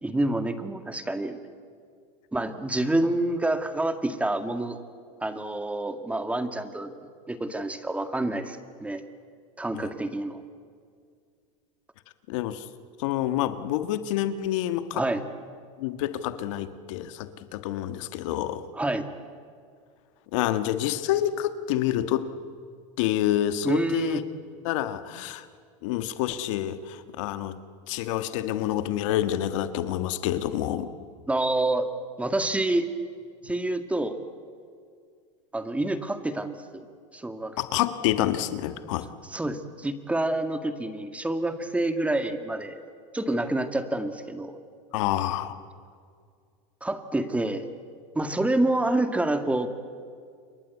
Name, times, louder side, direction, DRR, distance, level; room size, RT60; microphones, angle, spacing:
voice 1, 0.0-1.4 2.3-4.8 5.2-6.9 7.3-9.0 9.6-10.4 14.9-15.2 18.7-19.1 23.6-24.2 31.3-31.9 32.2-32.9 33.4-34.2 35.5-36.9 37.1-37.6 39.3-42.8 43.1-44.5 46.8-47.6 48.1-49.7, right 2 dB, 10° right, 9 dB, 2.0 m, -27 dB
voice 2, 12.3-12.6 13.0-15.0 15.8-18.6 20.3-22.3 23.0-24.2 24.6-25.4 25.8-27.6 27.9-30.9 37.6-39.1 44.9-45.6, left 12 dB, 75° left, 11 dB, 1.6 m, -28 dB
28.0 x 22.5 x 8.4 m, 2.2 s
supercardioid pair, 120°, 16 cm